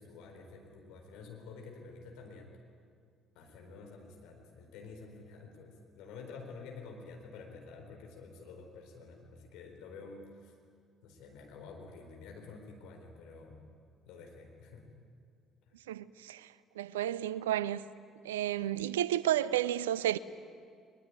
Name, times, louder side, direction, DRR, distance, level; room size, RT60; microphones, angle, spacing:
voice 1, 0.0-2.5 3.3-10.5 11.0-13.6 14.1-14.9, left 4 dB, 65° left, 4.3 m, -49 dB
voice 2, 15.9-16.5 16.8-17.8 18.2-20.2, right 12 dB, 75° right, 0.5 m, -31 dB
21.5 x 21.0 x 9.9 m
figure-of-eight pair, 50°, 0 cm